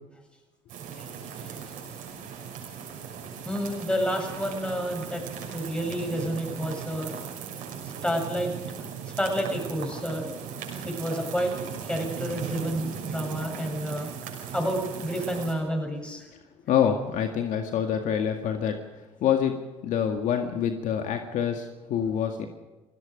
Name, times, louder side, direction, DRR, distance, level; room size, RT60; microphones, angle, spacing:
sound 1, 0.7-15.5, right 7 dB, 65° right, 6.2 m, -38 dB
voice 1, 3.4-5.2 5.5-7.1 8.0-8.5 9.2-10.3 10.8-11.5 11.8-14.1 14.5-16.3, equal, 5° left, 2 dB, 7.9 m, -29 dB
voice 2, 16.7-18.8 19.2-19.6 19.8-22.5, left 8 dB, 60° left, 5 dB, 2.0 m, -26 dB
30.0 x 17.5 x 5.2 m, 1.1 s
hypercardioid pair, 75°, 15 cm